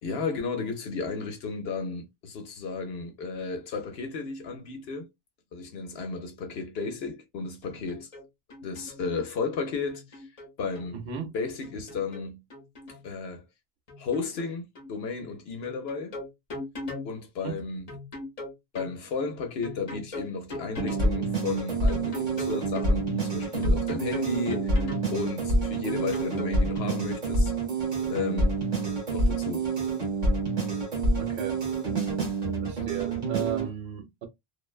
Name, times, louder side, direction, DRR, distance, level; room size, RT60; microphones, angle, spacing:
voice 1, 0.0-5.1 5.5-8.1 8.6-10.3 10.6-10.9 11.3-12.4 13.0-13.4 14.0-16.2 17.0-17.9 18.7-24.8 25.1-27.5 27.8-28.6 29.1-29.7, left 4 dB, 70° left, 0.9 m, -33 dB
sound 1, 7.6-8.2 8.5-9.1 9.9-10.9 11.6-13.1 13.9-14.5 14.7-14.9 15.6-17.1 17.9-18.9 19.6-21.1 21.9-22.9 23.6-25.1 25.9-26.8, left 2 dB, 35° left, 0.9 m, -39 dB
voice 2, 10.9-11.3 17.4-17.6 31.2-31.6 32.6-34.3, right 8 dB, 75° right, 0.9 m, -35 dB
sound 2, 20.8-33.7, right 2 dB, 45° right, 1.1 m, -27 dB
2.5 x 2.1 x 2.3 m
omnidirectional pair, 1.1 m